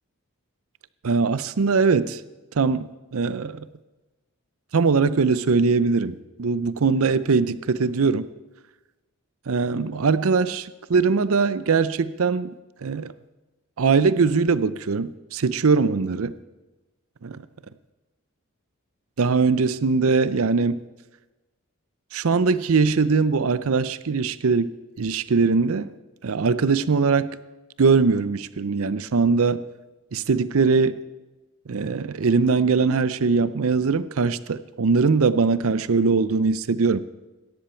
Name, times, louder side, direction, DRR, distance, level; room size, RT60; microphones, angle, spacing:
voice 1, 1.0-2.2 2.5-3.6 4.7-8.3 9.5-12.5 12.8-13.1 13.8-16.3 17.2-17.4 19.2-20.8 22.1-25.9 26.2-27.4 27.8-29.6 30.1-31.0 31.7-37.0, right 4 dB, 75° right, 16 dB, 0.6 m, -21 dB
17.0 x 13.0 x 4.5 m, 1.1 s
head